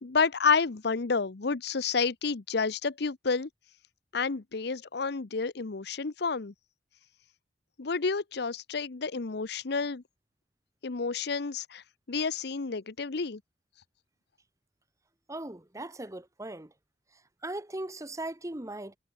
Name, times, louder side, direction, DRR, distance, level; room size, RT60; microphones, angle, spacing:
voice 1, 0.0-3.5 4.1-6.5 7.8-10.0 10.8-11.8 12.1-13.4, left 4 dB, 60° left, 0.8 m, -30 dB
voice 2, 15.3-16.7 17.4-19.0, right 1 dB, 15° right, 1.3 m, -38 dB
head